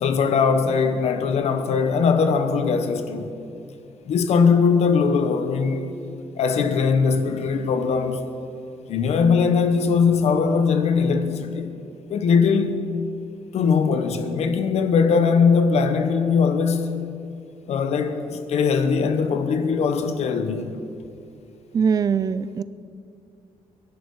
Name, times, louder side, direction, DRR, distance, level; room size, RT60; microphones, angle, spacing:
voice 1, 0.0-3.3 4.1-5.9 6.4-8.2 8.9-11.7 12.1-12.8 13.5-17.0 17.7-20.7, left 5 dB, 60° left, 1.1 m, -20 dB
voice 2, 21.7-22.6, right 6 dB, 30° right, 0.4 m, -21 dB
22.5 x 11.5 x 4.8 m
cardioid pair, 175°, 12 cm